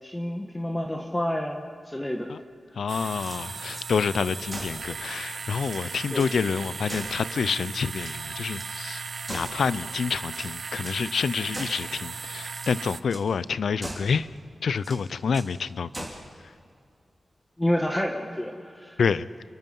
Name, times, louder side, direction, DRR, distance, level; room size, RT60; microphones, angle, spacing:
voice 1, 0.0-2.3 6.1-6.3 17.6-19.0, left 1 dB, 15° left, 2 dB, 1.5 m, -29 dB
voice 2, 2.8-9.0 9.3-14.3 14.6-16.1 16.4-16.5 19.0-19.3, left 6 dB, 90° left, 17 dB, 0.6 m, -28 dB
sound 1, 2.9-13.0, right 5 dB, 65° right, 0.8 m, -37 dB
sound 2, 3.2-3.9 4.5-4.9 5.3-5.4 5.6-6.4 6.9-7.6 7.9-8.7 9.3-9.8 10.3-11.0 11.5-11.9 12.4-12.8 13.1-13.3 13.8-14.2 14.8-15.5 15.9-16.3, right 1 dB, 15° right, 4.3 m, -40 dB
29.5 x 23.0 x 5.5 m, 2.2 s
wide cardioid pair, 100°, 0 cm